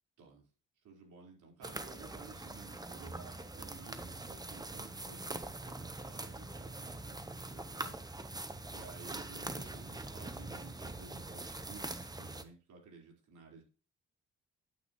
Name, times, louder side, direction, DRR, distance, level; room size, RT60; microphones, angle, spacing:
voice 1, 0.8-13.6, right 4 dB, 75° right, 0 dB, 4.5 m, -55 dB
sound 1, 1.6-12.4, right 2 dB, 15° right, 1.0 m, -43 dB
12.0 x 9.1 x 3.1 m, 0.36 s
cardioid pair, 90°, 30 cm